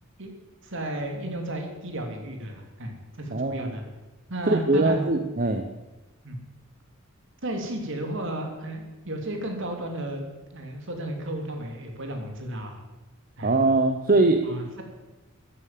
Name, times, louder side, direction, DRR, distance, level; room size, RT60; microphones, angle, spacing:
voice 1, 0.6-3.8 4.3-5.1 6.2-6.4 7.4-10.2 10.5-12.8 13.4-13.5 14.4-14.8, right 1 dB, 60° right, 4 dB, 3.1 m, -33 dB
voice 2, 3.3-3.7 4.5-5.7 13.4-14.4, right 2 dB, 40° right, 7 dB, 0.9 m, -22 dB
13.5 x 11.5 x 7.7 m, 1.1 s
head